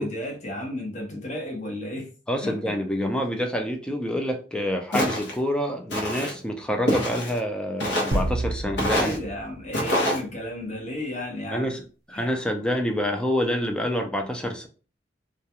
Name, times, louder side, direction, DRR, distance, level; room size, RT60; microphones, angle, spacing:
voice 1, 0.0-2.1 2.4-2.7 8.9-11.8 12.1-12.3, left 1 dB, 40° left, 0.8 m, -33 dB
voice 2, 2.3-9.2 11.5-11.8 12.1-14.7, equal, 5° left, 0.4 m, -27 dB
Walk footsteps, 4.9-5.4 5.9-6.3 6.9-7.4 7.8-8.2 8.8-9.2 9.7-10.2, equal, 65° left, 0.8 m, -26 dB
sound 1, 8.1-10.1, right 2 dB, 55° right, 0.5 m, -30 dB
2.3 x 2.2 x 2.7 m
head